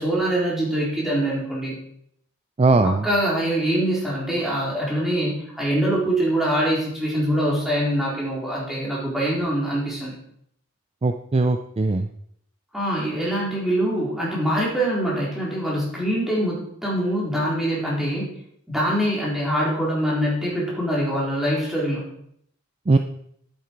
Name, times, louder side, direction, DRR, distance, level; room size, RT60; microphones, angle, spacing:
voice 1, 0.0-1.8 2.8-10.2 12.7-18.3 18.7-22.1, right 1 dB, ahead, -6 dB, 4.0 m, -24 dB
voice 2, 2.6-3.1 11.0-12.1 22.9-23.0, right 3 dB, 30° right, 8 dB, 0.4 m, -19 dB
11.0 x 8.9 x 4.6 m, 0.70 s
head